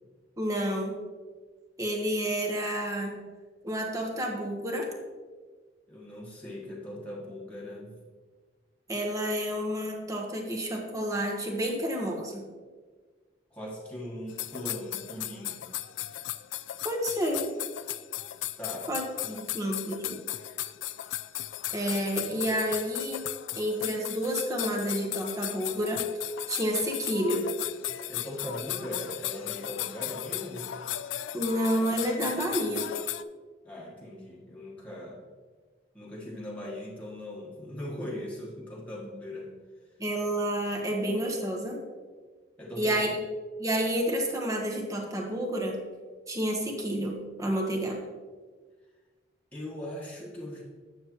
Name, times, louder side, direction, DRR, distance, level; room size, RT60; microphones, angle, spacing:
voice 1, 0.4-1.0 1.8-3.2 3.6-4.9 8.9-12.5 16.8-17.5 18.9-20.2 21.7-23.2 23.5-26.0 26.5-27.5 31.3-32.9 40.0-41.8 42.8-43.1 43.6-45.8 46.3-48.0, equal, 20° right, 0 dB, 1.2 m, -30 dB
voice 2, 5.9-8.0 13.5-15.7 18.6-18.9 28.1-30.7 33.6-35.2 35.9-39.5 42.6-42.9 49.5-50.6, left 1 dB, 10° left, -5 dB, 1.4 m, -39 dB
sound 1, 14.3-33.2, left 13 dB, 85° left, 0.4 m, -36 dB
9.5 x 7.1 x 3.0 m, 1.4 s
head